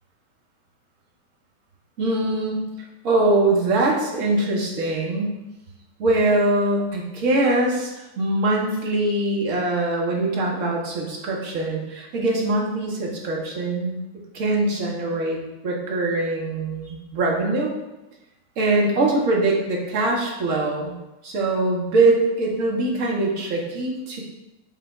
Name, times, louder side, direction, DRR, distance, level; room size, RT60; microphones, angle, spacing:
voice 1, 2.0-2.6 3.0-5.4 6.0-14.0 14.3-17.7 18.6-20.9 21.2-24.2, right 2 dB, 45° right, -1 dB, 0.7 m, -22 dB
3.3 x 2.1 x 3.5 m, 1.0 s
figure-of-eight pair, 90°, 0 cm